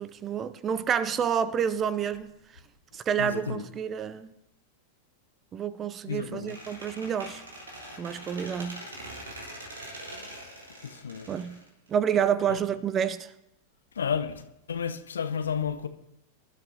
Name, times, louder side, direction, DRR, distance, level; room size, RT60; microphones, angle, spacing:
voice 1, 0.0-2.3 2.9-4.3 5.5-7.4 8.0-8.9 11.3-11.6 11.9-13.3, right 8 dB, 25° right, 0.6 m, -29 dB
voice 2, 3.2-3.6 6.1-6.6 10.8-11.3 12.5-12.6 13.9-14.4 14.7-15.9, left 7 dB, 70° left, 0.8 m, -31 dB
Squeak, 6.5-12.3, right 1 dB, 70° right, 3.9 m, -43 dB
25.0 x 12.5 x 2.8 m
figure-of-eight pair, 90°, 0 cm